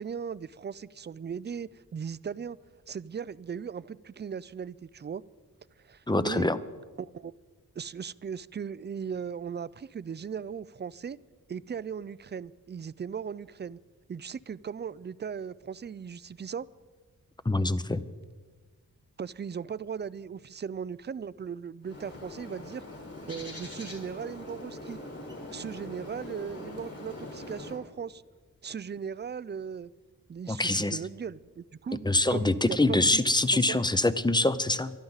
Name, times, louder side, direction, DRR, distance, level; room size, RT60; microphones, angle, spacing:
voice 1, 0.0-2.6 2.9-5.2 5.8-6.5 7.0-7.3 7.8-11.2 11.5-13.8 14.1-16.7 19.2-22.8 23.3-25.0 25.5-28.2 28.6-29.9 30.3-32.0 32.3-33.2 33.5-33.8, right 7 dB, 30° right, 0.4 m, -38 dB
voice 2, 6.1-6.6 17.4-18.0 30.5-31.0 32.0-34.9, left 2 dB, 15° left, 0.6 m, -25 dB
Bird, 21.8-27.8, left 1 dB, 45° left, 4.8 m, -42 dB
24.0 x 12.0 x 4.0 m
wide cardioid pair, 75°, 35 cm